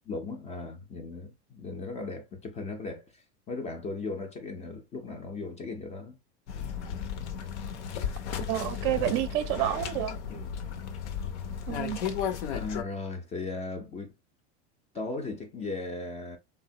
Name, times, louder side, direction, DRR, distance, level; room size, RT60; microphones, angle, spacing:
voice 1, 0.1-6.2 10.3-10.5 12.5-14.1 14.9-16.4, left 3 dB, 20° left, 0.3 m, -37 dB
sound 1, 6.5-12.8, left 8 dB, 80° left, 0.7 m, -34 dB
voice 2, 8.5-10.2 11.7-12.0, right 13 dB, 50° right, 0.4 m, -29 dB
3.3 x 2.1 x 2.7 m
supercardioid pair, 130°, 34 cm